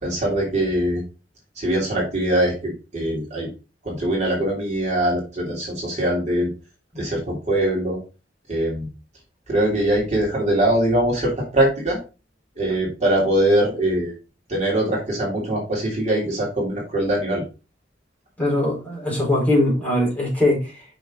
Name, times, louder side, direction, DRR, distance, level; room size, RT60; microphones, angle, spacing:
voice 1, 0.0-1.0 1.6-3.5 3.8-6.5 6.9-8.0 8.5-8.9 9.5-12.0 12.6-14.1 14.5-17.4, right 1 dB, 40° right, -3 dB, 3.1 m, -22 dB
voice 2, 18.4-20.8, left 1 dB, 10° left, -4 dB, 4.2 m, -21 dB
6.8 x 5.9 x 3.8 m, 0.31 s
head